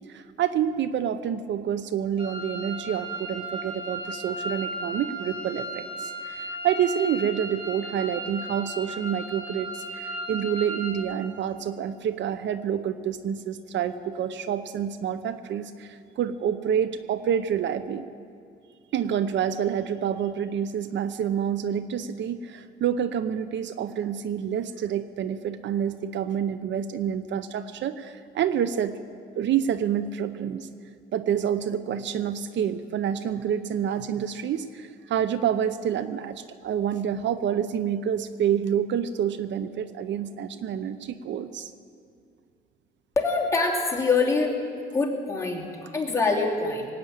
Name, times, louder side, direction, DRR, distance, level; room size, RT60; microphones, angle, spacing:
voice 1, 0.1-18.1 18.9-29.0 29.4-30.7 31.1-41.7, right 9 dB, 65° right, 13 dB, 0.6 m, -28 dB
sound 1, 2.2-11.0, right 1 dB, 25° right, 2.8 m, -35 dB
voice 2, 43.2-44.5 44.9-46.9, left 3 dB, 15° left, -2 dB, 2.9 m, -24 dB
18.5 x 8.7 x 8.8 m, 2.4 s
cardioid pair, 90°, 20 cm